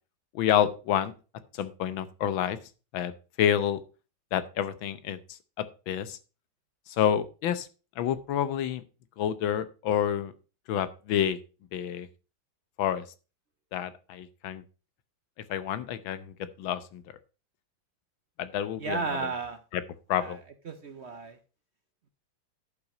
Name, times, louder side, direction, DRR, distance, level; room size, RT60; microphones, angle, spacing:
voice 1, 0.3-1.1 1.5-2.6 2.9-3.1 3.4-3.8 4.3-6.2 6.9-7.7 8.0-8.8 9.2-10.3 10.7-11.4 11.7-12.1 12.8-13.0 13.7-14.6 15.5-17.0 18.4-19.0 19.7-19.8 20.1-20.4, left 10 dB, 80° left, 13 dB, 1.6 m, -28 dB
voice 2, 18.8-19.6 20.1-20.4 20.7-21.4, right 4 dB, 65° right, 9 dB, 0.6 m, -33 dB
10.5 x 5.9 x 4.9 m, 0.34 s
omnidirectional pair, 2.2 m